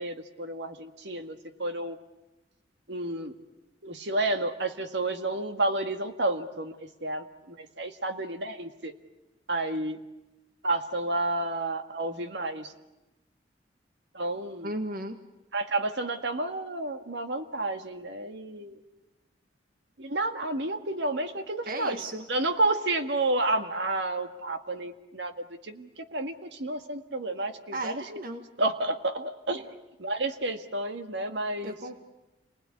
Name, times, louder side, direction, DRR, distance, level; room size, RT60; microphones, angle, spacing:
voice 1, 0.0-2.0 2.9-3.3 3.8-8.9 9.5-10.0 10.6-12.7 14.1-14.7 15.5-18.8 20.0-22.0 22.3-25.3 25.6-28.0 28.6-31.8, right 2 dB, 65° right, 7 dB, 1.9 m, -30 dB
voice 2, 14.6-15.2 21.7-22.2 27.7-28.5 31.6-32.0, right 1 dB, 50° right, 6 dB, 1.7 m, -35 dB
30.0 x 20.5 x 9.8 m, 1.0 s
head